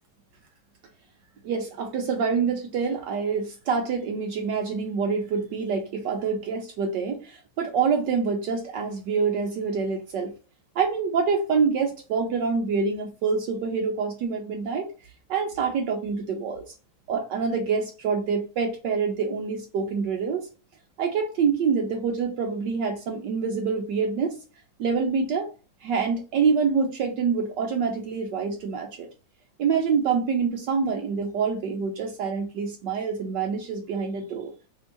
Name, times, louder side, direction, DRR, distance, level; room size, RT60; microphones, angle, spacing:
voice 1, 1.4-10.3 10.8-14.9 15.3-16.7 17.1-20.5 21.0-24.4 24.8-25.5 25.8-29.1 29.6-34.5, right 5 dB, 75° right, 1.0 m, -26 dB
3.4 x 2.7 x 2.9 m
omnidirectional pair, 2.4 m